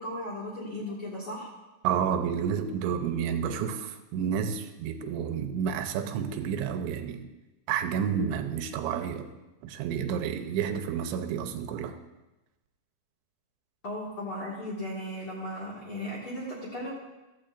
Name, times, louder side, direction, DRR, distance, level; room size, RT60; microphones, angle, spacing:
voice 1, 0.0-1.5 13.8-16.9, left 1 dB, 45° left, -5 dB, 1.8 m, -36 dB
voice 2, 1.8-7.3 7.7-9.3 9.6-12.0, right 7 dB, 85° right, 7 dB, 3.1 m, -30 dB
15.5 x 14.0 x 2.5 m, 1.0 s
omnidirectional pair, 5.1 m